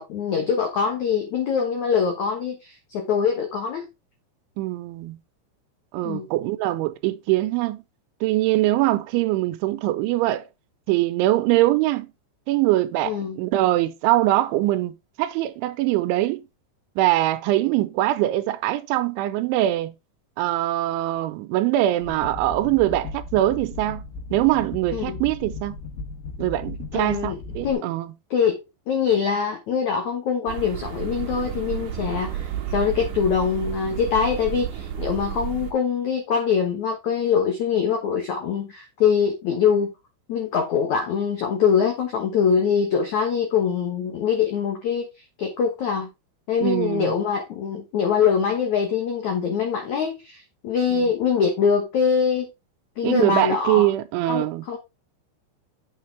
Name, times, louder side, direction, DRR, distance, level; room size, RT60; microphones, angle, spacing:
voice 1, 0.0-3.9 6.0-6.3 13.0-13.4 24.9-25.2 26.9-27.4 27.6-27.9 28.3-28.6 28.9-39.9 40.3-45.1 45.4-46.1 46.5-52.5 53.0-53.9 54.3-54.8, left 6 dB, 85° left, 1.6 m, -23 dB
voice 2, 4.6-5.2 5.9-7.8 8.2-10.5 10.9-12.1 12.5-14.9 15.2-16.4 17.0-19.9 20.4-24.0 24.3-25.8 26.4-28.1 46.6-47.2 50.9-51.1 53.0-54.6, right 15 dB, 80° right, 3.0 m, -22 dB
sound 1, 22.0-27.7, left 3 dB, 70° left, 3.6 m, -36 dB
sound 2, 30.5-35.7, right 9 dB, 65° right, 2.0 m, -31 dB
8.5 x 6.5 x 3.4 m
omnidirectional pair, 5.5 m